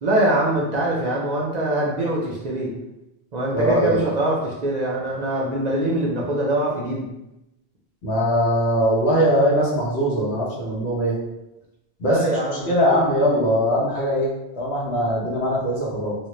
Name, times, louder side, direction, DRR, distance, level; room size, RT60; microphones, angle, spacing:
voice 1, 0.0-2.7 3.3-7.1 12.0-12.7, right 1 dB, 55° right, -4 dB, 0.5 m, -23 dB
voice 2, 3.5-4.0 8.0-11.1 12.0-12.2 12.7-14.3 14.6-16.2, equal, 85° left, -4 dB, 1.1 m, -21 dB
2.4 x 2.1 x 3.0 m, 0.93 s
omnidirectional pair, 1.1 m